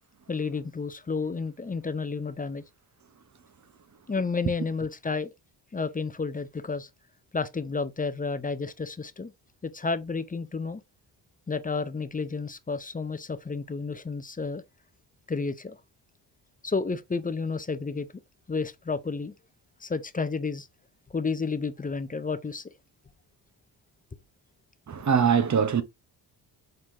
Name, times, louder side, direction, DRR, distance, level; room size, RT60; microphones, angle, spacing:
voice 1, 0.3-2.6 4.1-5.3 5.7-6.9 7.3-9.3 9.6-10.8 11.5-14.6 15.3-15.8 16.6-18.1 18.5-19.3 19.8-20.7 21.1-22.7, left 4 dB, 15° left, 0.6 m, -31 dB
voice 2, 24.9-25.8, right 7 dB, 35° right, 0.9 m, -22 dB
4.4 x 3.9 x 2.6 m
supercardioid pair, 50°, 50 cm